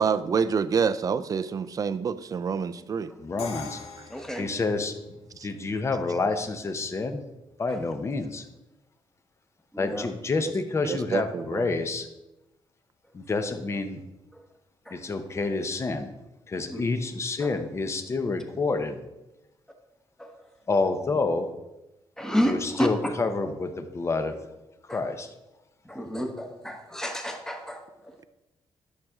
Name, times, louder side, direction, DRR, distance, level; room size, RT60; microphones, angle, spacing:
voice 1, 0.0-3.1 4.0-4.1 5.4-5.5 10.8-11.7, right 6 dB, 35° right, 13 dB, 0.4 m, -27 dB
voice 2, 3.2-3.8 4.4-4.9 5.4-7.2 7.6-8.4 9.8-12.1 13.1-14.0 14.9-16.1 16.5-19.0 20.7-21.5 22.4-24.4 24.9-25.3, left 3 dB, 30° left, 8 dB, 0.8 m, -28 dB
Crash cymbal, 3.4-5.3, left 4 dB, 80° left, 1.4 m, -41 dB
voice 3, 4.1-4.5 7.7-7.8 9.7-10.1 14.9-15.0 16.7-16.8 17.4-17.5 20.2-20.3 22.2-22.9 24.9-25.0 25.8-27.8, equal, 5° left, 4 dB, 1.1 m, -30 dB
12.0 x 6.5 x 3.6 m, 0.96 s
wide cardioid pair, 150°, 10 cm